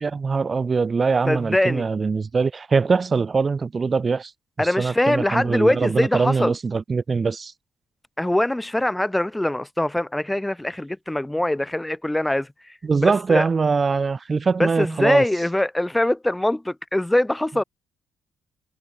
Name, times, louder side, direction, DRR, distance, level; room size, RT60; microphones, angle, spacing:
voice 1, 0.0-4.3 4.6-7.5 12.8-15.3, right 4 dB, 30° right, 0.8 m, -22 dB
voice 2, 1.3-1.9 4.6-6.5 8.2-13.4 14.6-17.6, left 1 dB, 10° left, 0.8 m, -23 dB
cardioid pair, 110°, 0 cm